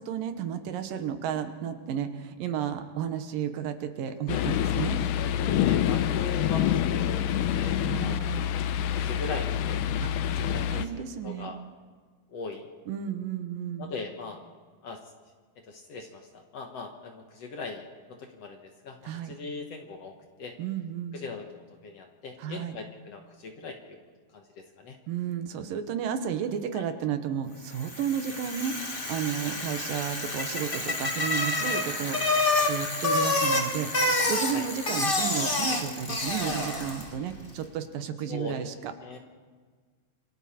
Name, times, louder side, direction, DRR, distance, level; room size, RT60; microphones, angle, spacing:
voice 1, 0.0-5.0 7.8-8.5 10.0-10.1 10.4-11.5 12.9-13.9 19.0-19.3 20.6-21.2 22.4-22.8 25.1-32.2 32.7-38.9, right 8 dB, 75° right, 8 dB, 2.8 m, -33 dB
sound 1, 4.3-10.9, left 10 dB, 75° left, 2.0 m, -27 dB
voice 2, 5.1-7.2 7.5-8.2 8.9-9.8 10.5-11.6 12.3-12.7 13.8-14.4 14.8-15.0 15.7-20.1 20.4-20.5 21.1-24.0 24.3-25.0 26.7-26.8 34.5-34.7 38.3-38.7 39.0-39.2, left 4 dB, 55° left, 3 dB, 2.0 m, -40 dB
Bicycle, 27.7-37.2, left 2 dB, 25° left, 1.3 m, -28 dB
27.5 x 23.5 x 4.3 m, 1.5 s
omnidirectional pair, 4.1 m